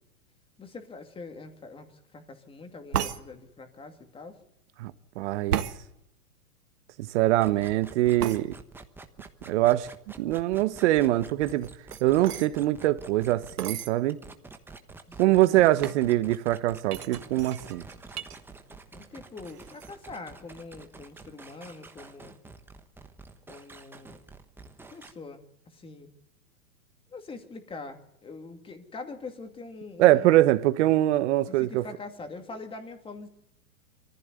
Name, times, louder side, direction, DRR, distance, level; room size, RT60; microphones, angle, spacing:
voice 1, 0.6-4.4 15.1-15.8 18.9-22.3 23.5-24.2 24.9-26.1 27.1-30.4 31.5-33.3, left 3 dB, 10° left, 2.5 m, -43 dB
sound 1, 2.9-3.2 5.5-5.8 8.2-8.4 11.5-12.5 13.6-13.9 14.6-14.7 14.9-15.3 15.8-16.0 16.9-18.4 18.7-19.1 19.4-19.9, right 10 dB, 90° right, 1.9 m, -33 dB
voice 2, 4.8-5.7 7.0-8.6 9.5-9.9 10.2-11.7 12.0-14.2 15.2-17.8 30.0-31.9, right 15 dB, 50° right, 1.4 m, -23 dB
sound 2, 7.4-13.5 14.1-25.1, right 3 dB, 5° right, 1.2 m, -48 dB
24.0 x 15.0 x 8.2 m
hypercardioid pair, 145°, 45 cm